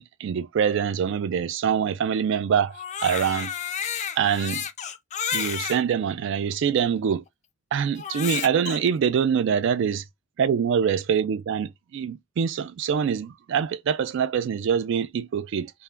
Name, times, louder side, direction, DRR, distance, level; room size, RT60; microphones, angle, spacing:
voice 1, 0.0-3.5 4.2-4.7 5.3-7.2 7.7-10.0 10.4-15.7, right 7 dB, 65° right, 0.3 m, -24 dB
Crying sobbing, 2.7-5.8 6.5-6.6 8.0-8.8, left 8 dB, 35° left, 0.3 m, -31 dB
2.3 x 2.1 x 3.2 m
head